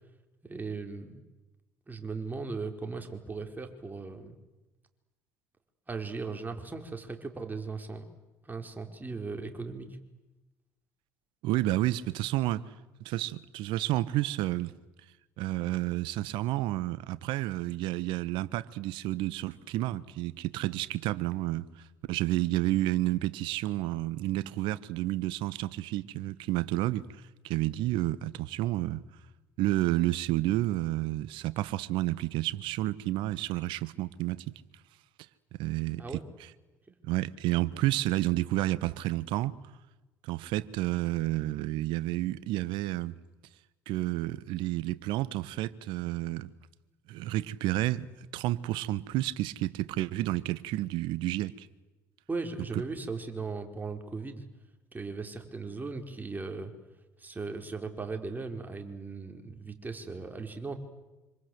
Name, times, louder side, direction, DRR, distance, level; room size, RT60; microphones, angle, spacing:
voice 1, 0.4-1.2 1.9-4.4 5.9-8.0 8.4-9.9 36.0-36.2 52.3-54.4 54.9-56.7 57.2-60.8, right 4 dB, 20° right, 4.7 m, -38 dB
voice 2, 11.4-12.6 13.0-14.7 15.4-21.6 22.1-27.0 27.4-29.0 29.6-34.5 35.6-36.2 37.0-39.5 40.2-43.1 43.9-46.5 47.1-48.1 48.3-51.7, right 16 dB, 65° right, 1.2 m, -30 dB
26.5 x 26.0 x 8.1 m
hypercardioid pair, 60°, 9 cm